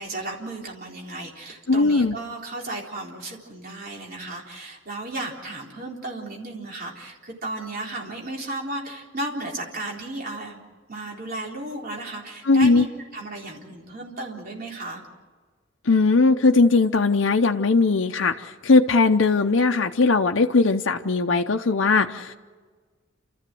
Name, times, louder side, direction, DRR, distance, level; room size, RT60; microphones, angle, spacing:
voice 1, 0.0-10.6 10.9-12.9 13.1-15.0, right 2 dB, 50° right, -1 dB, 3.8 m, -34 dB
voice 2, 1.7-2.2 12.4-12.9 15.8-22.3, left 3 dB, 80° left, 3 dB, 0.7 m, -19 dB
29.5 x 14.0 x 7.7 m, 1.5 s
head